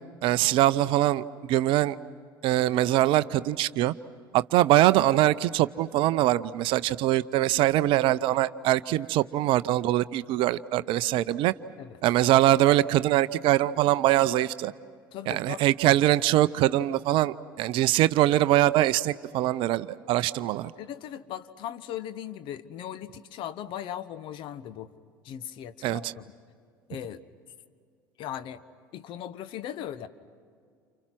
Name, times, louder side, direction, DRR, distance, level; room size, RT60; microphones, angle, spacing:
voice 1, 0.2-1.2 1.5-2.0 2.4-3.9 4.3-11.5 12.0-14.7 15.3-20.7 25.8-26.1, right 14 dB, 45° right, 16 dB, 0.6 m, -23 dB
voice 2, 15.1-15.6 20.8-24.9 25.2-26.2 26.9-27.2 28.2-28.6 28.9-30.1, left 10 dB, 45° left, 13 dB, 1.1 m, -38 dB
29.5 x 29.5 x 6.1 m, 2.2 s
figure-of-eight pair, 70°, 12 cm